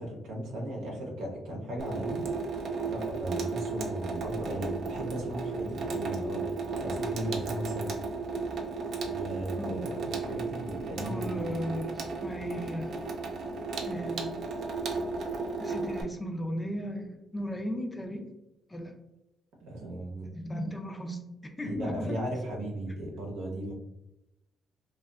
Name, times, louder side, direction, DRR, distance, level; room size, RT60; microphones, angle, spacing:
voice 1, 0.0-2.2 2.9-6.4 6.7-7.9 9.0-11.6 19.6-20.3 21.6-23.7, right 1 dB, 90° right, -1 dB, 0.7 m, -36 dB
Water tap faucet / Sink (filling or washing), 1.8-16.0, right 4 dB, 65° right, 0.4 m, -34 dB
voice 2, 9.6-9.9 11.0-12.9 13.8-14.3 15.6-18.3 18.7-18.9 20.3-22.2, equal, 15° left, 4 dB, 0.4 m, -36 dB
2.6 x 2.3 x 2.2 m, 0.94 s
cardioid pair, 90°, 0 cm